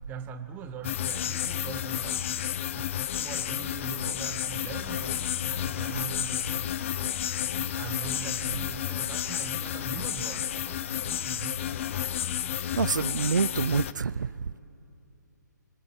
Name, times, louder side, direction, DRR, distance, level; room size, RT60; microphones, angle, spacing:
voice 1, 0.1-6.8 7.5-11.7, right 6 dB, 20° right, 1.9 m, -41 dB
sound 1, 0.8-13.9, left 11 dB, 40° left, 0.9 m, -31 dB
voice 2, 12.8-14.6, right 5 dB, 75° right, 0.6 m, -27 dB
25.5 x 25.0 x 8.9 m
figure-of-eight pair, 140°, 10 cm